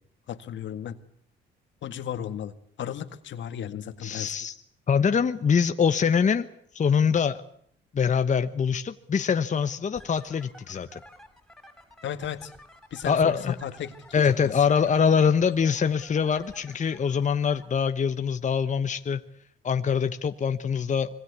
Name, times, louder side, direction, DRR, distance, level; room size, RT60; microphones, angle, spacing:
voice 1, 0.3-1.0 1.8-2.5 2.8-4.3 12.0-12.5 12.9-13.4 13.6-14.3, left 9 dB, 70° left, 11 dB, 1.9 m, -35 dB
voice 2, 4.0-4.6 4.9-6.5 6.7-7.4 7.9-11.0 13.0-13.5 14.1-19.2 19.6-21.2, left 6 dB, 40° left, 9 dB, 1.1 m, -24 dB
sound 1, 9.9-17.8, left 1 dB, ahead, 5.2 m, -52 dB
26.0 x 23.0 x 8.3 m, 0.66 s
cardioid pair, 90°, 20 cm